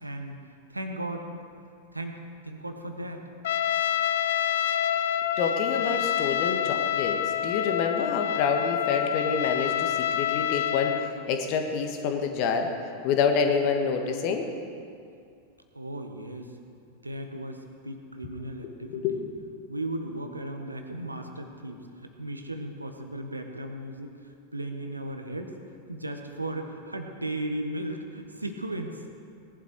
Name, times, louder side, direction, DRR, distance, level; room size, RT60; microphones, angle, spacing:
voice 1, 0.0-0.4 0.7-1.3 1.9-3.2 15.7-16.6 16.9-19.2 19.7-25.6 25.9-29.0, right 1 dB, 85° right, 5 dB, 1.2 m, -36 dB
Trumpet, 3.4-11.1, left 10 dB, 60° left, 0.5 m, -27 dB
voice 2, 5.4-12.7 13.0-14.5 18.8-19.3, left 5 dB, 45° left, 5 dB, 1.5 m, -27 dB
18.0 x 11.5 x 4.6 m, 2.4 s
figure-of-eight pair, 90°, 0 cm